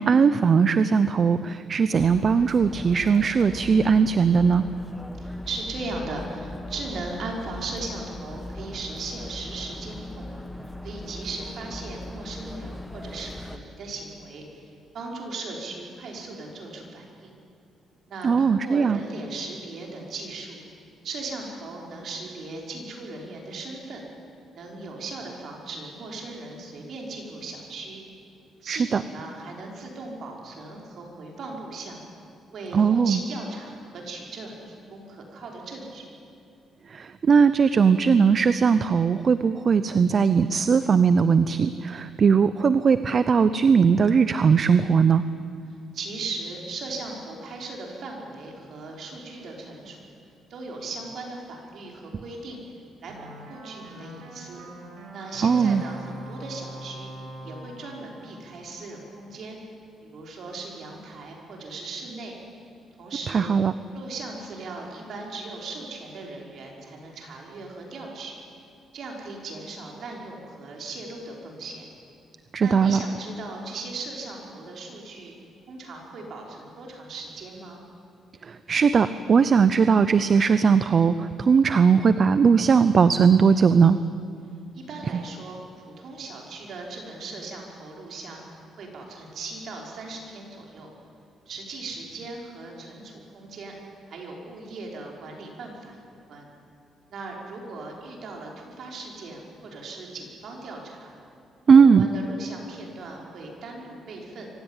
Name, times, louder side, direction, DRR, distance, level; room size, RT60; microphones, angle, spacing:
voice 1, 0.0-4.6 18.2-19.0 28.7-29.0 32.7-33.2 36.9-45.2 55.4-55.8 63.3-63.7 72.5-73.0 78.5-84.0 101.7-102.1, right 6 dB, 45° right, 13 dB, 0.7 m, -19 dB
sound 1, 2.0-13.6, left 1 dB, 5° left, 1.2 m, -39 dB
voice 2, 5.2-10.3 10.8-17.3 18.1-20.6 21.0-24.0 24.5-28.0 28.6-32.0 32.5-36.1 45.9-50.0 50.5-52.6 53.0-54.6 55.1-57.1 57.4-59.6 60.0-62.3 63.0-63.5 63.9-68.4 68.9-71.9 72.6-75.3 75.7-77.8 84.7-85.6 85.8-90.9 91.5-93.7 94.1-96.5 97.1-101.1 101.7-104.5, right 3 dB, 65° right, 0 dB, 5.4 m, -38 dB
sound 2, 53.1-59.2, right 1 dB, 85° right, 5.3 m, -42 dB
24.5 x 16.0 x 9.2 m, 2.7 s
cardioid pair, 90°, 0 cm